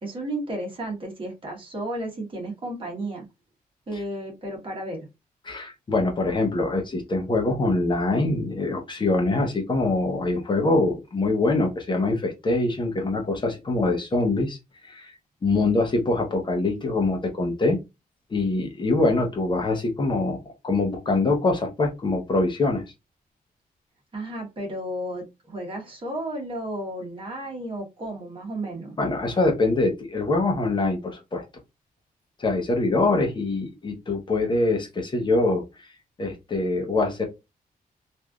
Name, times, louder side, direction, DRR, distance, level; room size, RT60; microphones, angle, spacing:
voice 1, 0.0-3.2 3.9-5.1 24.1-29.0, right 1 dB, 35° right, -1 dB, 1.3 m, -33 dB
voice 2, 5.4-14.6 14.8-15.1 15.4-17.8 18.3-20.4 20.6-22.8 29.0-31.4 32.4-35.6 36.2-37.2, left 2 dB, 30° left, 3 dB, 0.8 m, -24 dB
3.2 x 2.6 x 2.3 m, 0.23 s
wide cardioid pair, 150°, 15 cm